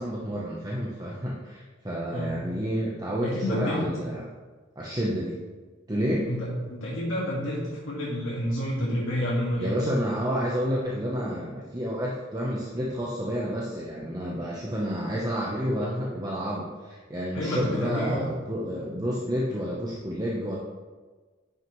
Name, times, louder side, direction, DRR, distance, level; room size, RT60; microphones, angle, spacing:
voice 1, 0.0-4.2 4.8-5.4 5.9-6.3 9.6-20.6, equal, 20° right, -4 dB, 0.8 m, -30 dB
voice 2, 3.2-3.9 6.3-9.8 17.3-18.2 18.8-18.9, left 1 dB, 85° left, -6 dB, 1.8 m, -29 dB
9.9 x 6.1 x 3.1 m, 1.3 s
head